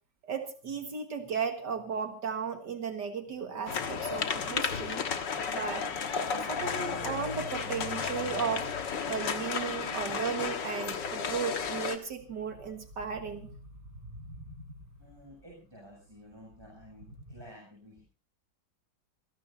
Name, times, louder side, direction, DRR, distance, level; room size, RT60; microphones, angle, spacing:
voice 1, 0.2-5.0 5.5-5.9 6.5-8.7 9.1-13.5, right 6 dB, 70° right, 6 dB, 2.2 m, -35 dB
sound 1, 3.7-12.0, left 6 dB, 80° left, 2.1 m, -33 dB
sound 2, 9.1-17.4, equal, 50° right, 4.7 m, -52 dB
voice 2, 15.0-18.0, equal, 15° right, -3 dB, 7.1 m, -52 dB
27.5 x 17.0 x 2.7 m, 0.35 s
omnidirectional pair, 1.9 m